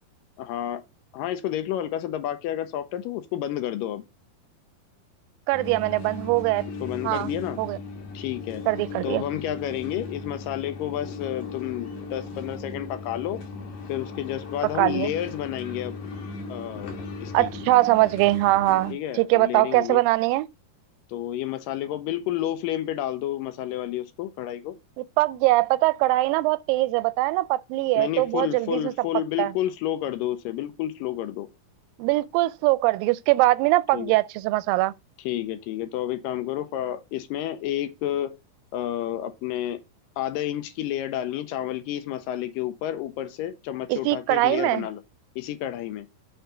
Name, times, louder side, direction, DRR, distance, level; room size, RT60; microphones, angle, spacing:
voice 1, 0.4-0.8 1.1-4.0 6.8-7.6 8.1-8.6 9.0-13.4 13.9-16.0 16.5-17.5 18.9-20.0 21.1-24.8 28.0-31.5 33.9-34.1 35.2-38.4 38.7-39.8 40.2-45.0 45.4-46.1, left 12 dB, 80° left, 2.1 m, -30 dB
sound 1, 5.5-18.9, left 3 dB, 65° left, 2.4 m, -37 dB
voice 2, 5.5-6.7 7.0-7.3 7.6-7.8 8.7-9.2 14.8-15.1 17.3-20.5 25.2-28.9 29.4-29.5 32.0-34.9 43.9-44.9, right 18 dB, 80° right, 2.1 m, -22 dB
6.6 x 4.6 x 5.0 m
omnidirectional pair, 4.3 m